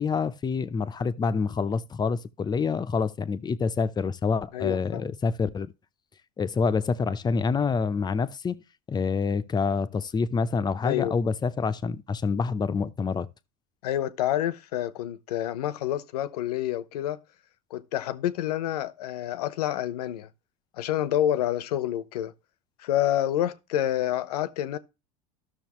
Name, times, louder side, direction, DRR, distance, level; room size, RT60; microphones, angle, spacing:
voice 1, 0.0-5.7 6.4-8.6 8.9-13.3, left 5 dB, 20° left, 0.7 m, -27 dB
voice 2, 4.5-5.1 10.8-11.2 13.8-17.2 17.7-20.3 20.7-22.3 22.8-24.8, left 12 dB, 90° left, 1.0 m, -28 dB
13.0 x 6.5 x 3.1 m
supercardioid pair, 110°, 19 cm